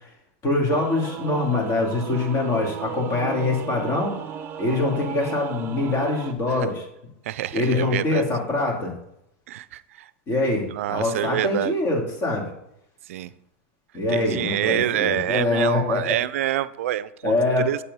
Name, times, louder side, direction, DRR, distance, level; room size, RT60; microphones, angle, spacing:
voice 1, 0.4-4.1 4.6-6.9 7.5-8.9 10.3-12.5 13.9-16.1 17.2-17.7, left 2 dB, 35° left, 0 dB, 2.3 m, -24 dB
Singing / Musical instrument, 0.7-6.3, right 8 dB, 30° right, 0.7 m, -35 dB
voice 2, 7.3-8.2 9.5-10.1 10.7-11.8 13.1-13.3 14.1-17.8, right 13 dB, 80° right, 16 dB, 0.4 m, -26 dB
6.8 x 4.4 x 5.4 m, 0.77 s
supercardioid pair, 130°, 7 cm